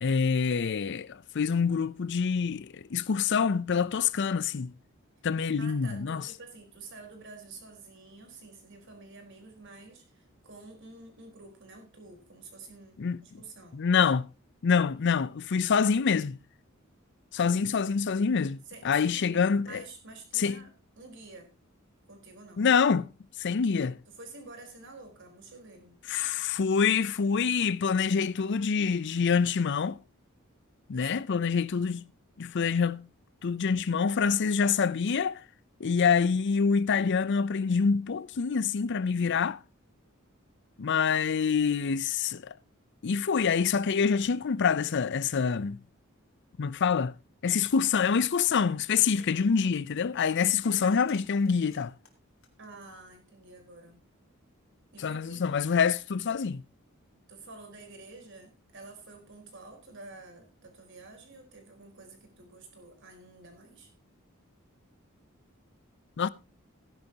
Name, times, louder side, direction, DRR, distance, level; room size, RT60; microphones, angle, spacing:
voice 1, 0.0-4.7 5.2-6.2 13.0-13.2 13.7-14.2 14.6-16.4 17.3-19.8 20.4-20.6 22.6-23.1 23.4-24.0 26.1-30.0 30.9-32.1 32.4-33.1 33.4-35.4 35.8-39.6 40.8-42.5 43.0-45.8 46.6-47.1 47.4-51.9 55.0-56.6 66.2-66.3, left 6 dB, 55° left, 0.5 m, -26 dB
voice 2, 5.6-14.1 18.7-21.5 22.1-22.7 24.1-26.0 30.9-31.6 49.2-49.6 50.7-51.1 52.6-54.0 54.9-55.4 57.3-63.9, right 3 dB, 60° right, 4.2 m, -49 dB
sound 1, 49.0-49.5 50.6-53.1, left 5 dB, 75° left, 3.0 m, -56 dB
16.5 x 10.5 x 2.8 m
head